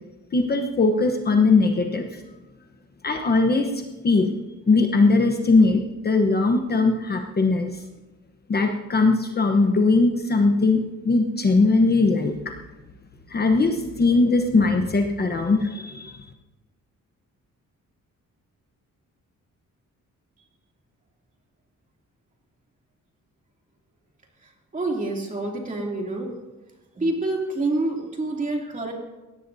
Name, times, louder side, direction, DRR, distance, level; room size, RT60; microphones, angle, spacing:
voice 1, 0.3-2.1 3.0-4.3 4.7-7.7 8.5-12.3 13.3-16.1, left 3 dB, 30° left, 4 dB, 1.0 m, -20 dB
voice 2, 24.7-26.3 27.0-28.9, right 2 dB, 25° right, -1 dB, 2.8 m, -27 dB
21.0 x 17.5 x 2.7 m, 1.1 s
wide cardioid pair, 160°, 31 cm